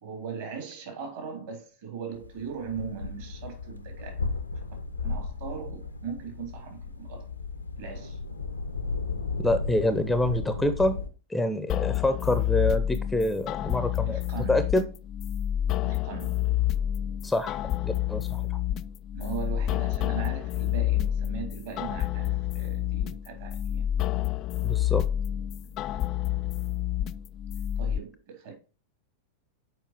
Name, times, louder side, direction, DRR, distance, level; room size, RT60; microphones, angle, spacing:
voice 1, 0.0-4.2 5.0-7.3 7.8-8.2 14.0-14.6 15.8-16.4 19.1-23.9 27.8-28.5, right 7 dB, 55° right, 3.4 m, -39 dB
sound 1, 2.1-11.1, left 4 dB, 80° left, 0.7 m, -34 dB
voice 2, 9.4-11.0 11.3-14.2 14.5-14.9 17.2-18.4 24.6-25.1, left 1 dB, 5° left, 0.7 m, -26 dB
sound 2, 11.7-28.0, left 12 dB, 35° left, 0.3 m, -29 dB
7.3 x 5.1 x 4.5 m
figure-of-eight pair, 90°, 0 cm